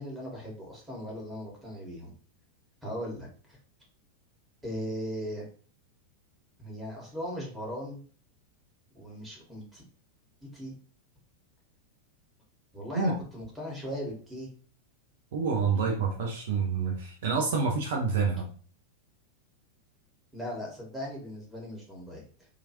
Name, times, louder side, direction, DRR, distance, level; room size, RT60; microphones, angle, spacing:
voice 1, 0.0-2.1 2.8-3.6 4.6-5.5 6.6-8.0 8.9-9.8 10.4-10.7 12.7-14.5 20.3-22.2, equal, 5° right, -3 dB, 1.5 m, -38 dB
voice 2, 15.3-18.5, right 5 dB, 55° right, 2 dB, 0.5 m, -28 dB
2.9 x 2.4 x 2.9 m, 0.43 s
figure-of-eight pair, 90°, 0 cm